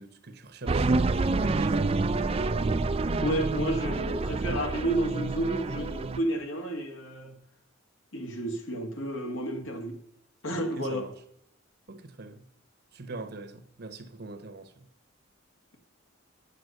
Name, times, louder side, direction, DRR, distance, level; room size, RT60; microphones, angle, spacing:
voice 1, 0.0-2.6 10.6-11.1 11.9-12.4 12.9-14.9, right 3 dB, 50° right, 1.1 m, -42 dB
sound 1, 0.7-6.2, right 3 dB, 30° right, 0.4 m, -27 dB
voice 2, 3.2-7.3 8.1-10.0 10.4-11.1, right 1 dB, 75° left, 1.7 m, -31 dB
10.0 x 7.9 x 6.6 m
head